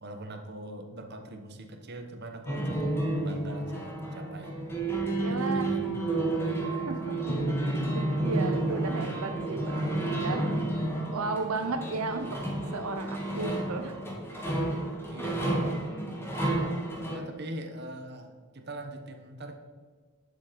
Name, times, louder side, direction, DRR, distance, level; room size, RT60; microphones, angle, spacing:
voice 1, 0.0-2.9 3.2-4.6 5.3-6.9 15.1-15.8 17.1-19.5, right 1 dB, 50° right, 5 dB, 1.2 m, -42 dB
sound 1, 2.5-17.2, right 2 dB, 10° left, 1.9 m, -31 dB
voice 2, 5.2-5.7 6.9-10.7 11.1-12.4 12.7-14.0, right 3 dB, 80° right, 6 dB, 0.8 m, -35 dB
11.0 x 7.3 x 5.2 m, 1.5 s
head